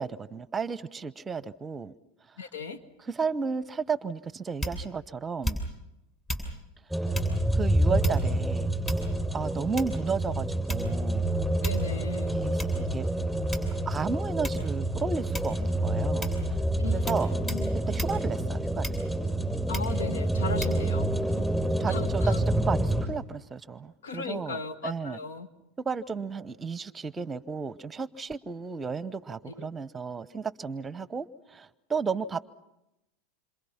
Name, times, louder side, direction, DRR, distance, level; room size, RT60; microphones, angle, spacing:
voice 1, 0.0-1.9 3.0-5.6 7.5-8.7 9.3-11.3 12.3-13.1 13.9-16.6 16.9-17.4 17.9-18.9 21.8-25.2 25.8-32.5, right 5 dB, 20° right, 18 dB, 0.9 m, -33 dB
voice 2, 2.4-2.8 11.6-12.4 16.8-17.7 19.7-21.5 21.9-22.4 24.0-25.5 29.5-29.7, left 5 dB, 85° left, 9 dB, 2.0 m, -37 dB
sound 1, 4.6-5.0 5.4-5.9 6.3-6.5 7.1-7.4 8.0-8.4 8.9-9.3 9.8-10.1 10.7-11.1 11.6-11.9 12.6-12.7 13.5-13.9 14.4-14.7 15.3-15.7 16.2-16.5 17.1-17.2 17.5-17.7 18.0-18.2 18.8-19.2 19.7-20.0 20.6-20.8, equal, 25° left, 7.2 m, -34 dB
sound 2, 6.9-23.1, right 1 dB, ahead, 6.6 m, -28 dB
27.5 x 26.5 x 5.8 m, 0.89 s
hypercardioid pair, 100°, 0 cm